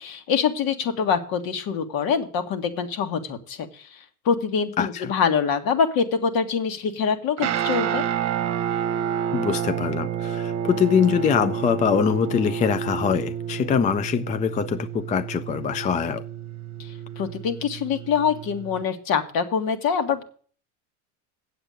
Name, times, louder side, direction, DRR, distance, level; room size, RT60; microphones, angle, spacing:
voice 1, 0.0-4.0 4.3-8.0 17.2-20.2, left 6 dB, 55° left, 1.9 m, -24 dB
voice 2, 4.8-5.1 9.3-16.2, left 7 dB, 20° left, 0.4 m, -23 dB
Guitar, 7.4-18.8, right 9 dB, 40° right, 1.1 m, -29 dB
8.1 x 7.8 x 6.4 m
supercardioid pair, 95°, 42 cm